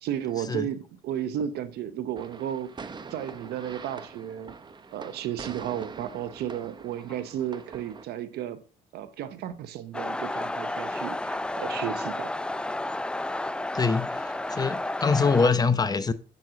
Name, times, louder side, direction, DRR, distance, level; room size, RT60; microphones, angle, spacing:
voice 1, 0.0-2.7 3.1-4.5 4.9-8.6 8.9-12.3, right 10 dB, 75° right, 1.0 m, -33 dB
sound 1, 2.2-8.1, right 4 dB, 25° right, 0.8 m, -44 dB
sound 2, 9.9-15.5, left 2 dB, 5° left, 0.3 m, -31 dB
voice 2, 13.7-16.1, left 4 dB, 25° left, 0.7 m, -24 dB
7.7 x 7.4 x 3.8 m
cardioid pair, 110°, 17 cm